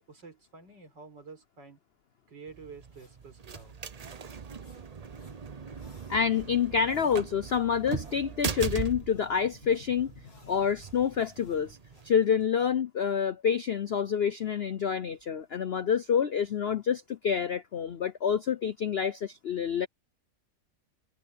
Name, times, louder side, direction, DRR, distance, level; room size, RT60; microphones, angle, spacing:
voice 1, 0.1-1.8 2.3-3.8, right 4 dB, 85° right, 5.0 m, -49 dB
sound 1, 2.5-12.1, right 6 dB, 65° right, 0.3 m, -40 dB
sound 2, 2.8-12.5, left 2 dB, 90° left, 5.7 m, -64 dB
voice 2, 6.1-10.1 10.4-11.8 12.0-19.9, left 7 dB, 70° left, 0.5 m, -27 dB
omnidirectional pair, 1.9 m